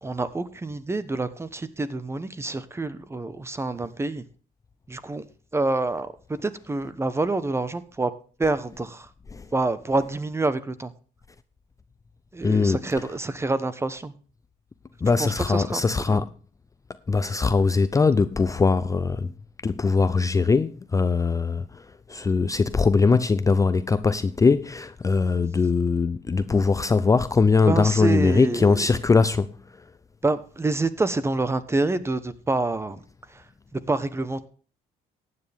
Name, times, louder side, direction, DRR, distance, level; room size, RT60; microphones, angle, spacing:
voice 1, 0.0-4.2 4.9-5.2 5.5-8.1 8.4-9.1 9.5-10.9 12.3-14.1 15.2-16.2 27.7-28.8 30.2-33.0 33.7-34.5, right 2 dB, 15° right, 1.1 m, -27 dB
voice 2, 12.4-12.8 15.0-16.3 17.1-19.3 19.6-29.5, left 4 dB, 20° left, 0.5 m, -21 dB
15.0 x 9.7 x 3.5 m
cardioid pair, 110°, 17 cm